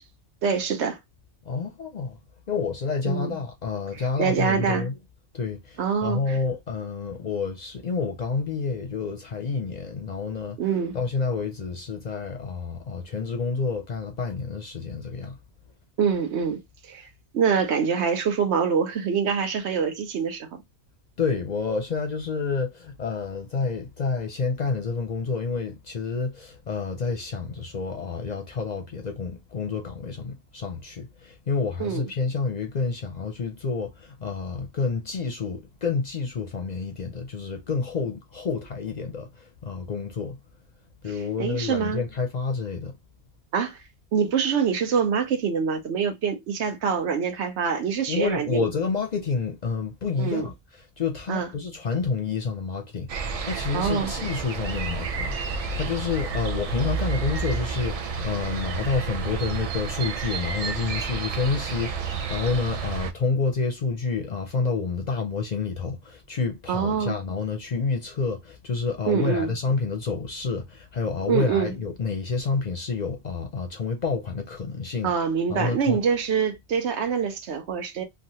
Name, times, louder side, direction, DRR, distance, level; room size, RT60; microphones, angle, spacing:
voice 1, 0.4-1.0 3.0-3.3 3.9-4.9 5.8-6.4 10.6-11.0 16.0-17.1 17.3-20.5 31.8-32.0 41.4-42.0 43.5-43.8 44.1-48.7 50.2-50.5 51.3-51.5 53.7-54.1 66.7-67.2 69.1-69.5 71.3-71.7 75.0-78.0, right 6 dB, 80° right, 1.0 m, -25 dB
voice 2, 1.5-2.2 2.5-5.0 5.3-10.6 10.9-15.4 21.2-40.4 41.0-42.9 48.1-50.5 51.0-75.1 75.5-76.0, left 4 dB, 50° left, 0.5 m, -29 dB
sound 1, 53.1-63.1, right 5 dB, 65° right, 0.3 m, -30 dB
3.1 x 2.3 x 2.7 m
omnidirectional pair, 1.1 m